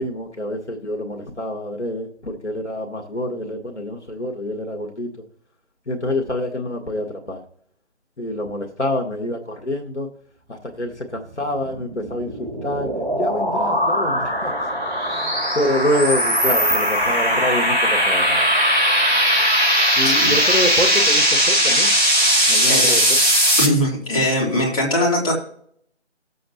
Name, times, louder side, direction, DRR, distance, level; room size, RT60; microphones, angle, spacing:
voice 1, 0.0-5.1 5.9-7.4 8.2-10.1 10.5-14.5 15.0-18.5 20.0-21.9 22.5-23.0, left 1 dB, 75° left, 2 dB, 1.9 m, -26 dB
sound 1, 11.7-23.7, equal, 45° right, 3.9 m, -19 dB
voice 2, 23.6-25.3, left 1 dB, 30° left, -3 dB, 3.2 m, -20 dB
17.5 x 7.6 x 2.8 m, 0.63 s
figure-of-eight pair, 155°, 34 cm